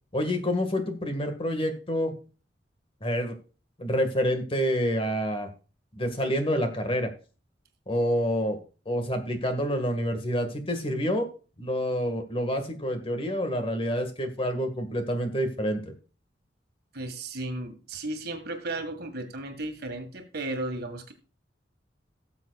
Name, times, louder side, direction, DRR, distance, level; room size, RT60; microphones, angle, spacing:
voice 1, 0.1-2.1 3.0-3.3 3.8-5.5 6.0-7.1 7.9-8.6 8.9-11.3 11.6-15.8, equal, 30° left, 7 dB, 1.7 m, -27 dB
voice 2, 16.9-21.1, right 2 dB, 60° right, 7 dB, 1.8 m, -34 dB
18.0 x 7.3 x 2.4 m, 0.36 s
head